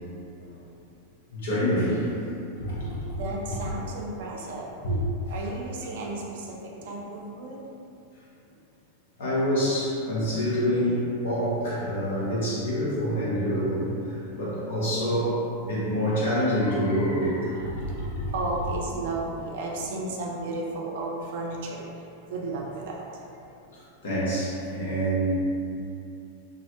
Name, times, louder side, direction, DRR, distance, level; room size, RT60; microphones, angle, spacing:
voice 1, 1.3-2.1 2.6-3.2 4.8-5.0 6.7-6.8 9.2-18.3 23.7-25.3, equal, 60° left, -8 dB, 0.8 m, -27 dB
voice 2, 3.2-4.8 5.3-7.6 14.3-14.4 17.8-23.2, right 2 dB, 55° right, -2 dB, 0.3 m, -34 dB
2.5 x 2.0 x 2.6 m, 2.6 s
figure-of-eight pair, 90°, 0 cm